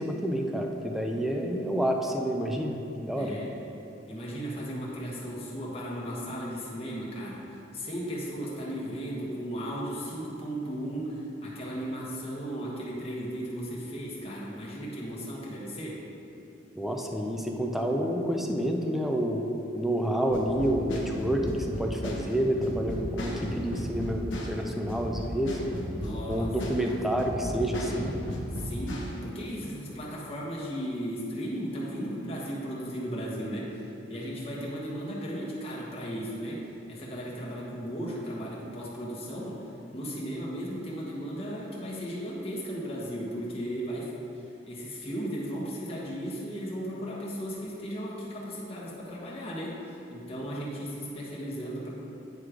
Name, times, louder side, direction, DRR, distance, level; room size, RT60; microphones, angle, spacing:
voice 1, 0.0-3.3 16.8-19.5 19.7-25.6 26.3-28.1, equal, ahead, 2 dB, 0.4 m, -29 dB
voice 2, 3.1-3.5 4.1-16.0 25.9-26.5 26.8-27.0 28.5-39.6 39.9-44.1 44.7-51.9, equal, 30° left, -6 dB, 1.4 m, -36 dB
sound 1, 20.3-29.2, equal, 80° left, 1.0 m, -35 dB
9.5 x 3.2 x 4.9 m, 2.9 s
head